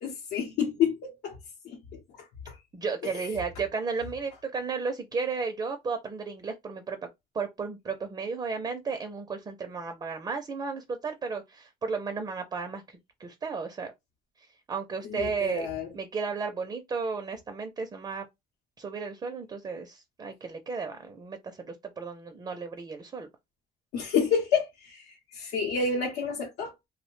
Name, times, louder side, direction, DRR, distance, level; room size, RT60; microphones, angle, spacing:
voice 1, 0.0-1.4 1.6-2.6 3.0-3.4 15.0-15.9 23.9-26.7, left 6 dB, 80° left, 0.8 m, -30 dB
voice 2, 2.7-7.1 7.3-13.9 14.7-15.7 15.9-18.2 18.8-23.3, right 5 dB, 25° right, 0.4 m, -34 dB
2.5 x 2.1 x 3.0 m
cardioid pair, 110°, 17 cm